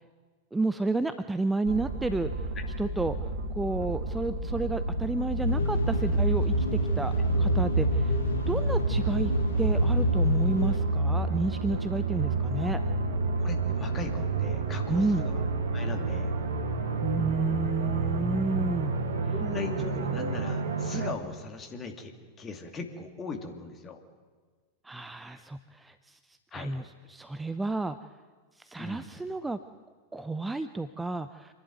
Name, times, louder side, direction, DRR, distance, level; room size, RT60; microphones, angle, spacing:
voice 1, 0.5-2.3 2.8-3.2 3.5-8.2 8.5-9.3 9.6-12.8 14.9-15.2 17.0-18.9 24.8-26.2 26.5-28.0 28.6-29.6 30.1-31.5, right 3 dB, 10° right, 11 dB, 0.6 m, -31 dB
sound 1, 1.6-21.1, right 3 dB, 65° right, 1.9 m, -30 dB
sound 2, 5.4-10.8, equal, 65° left, 2.1 m, -27 dB
voice 2, 13.4-15.4 15.7-16.3 19.3-22.1 22.4-24.0 26.5-26.7 28.8-29.1, left 4 dB, 25° left, 5 dB, 2.6 m, -38 dB
26.5 x 11.5 x 9.4 m, 1.5 s
figure-of-eight pair, 90°, 0 cm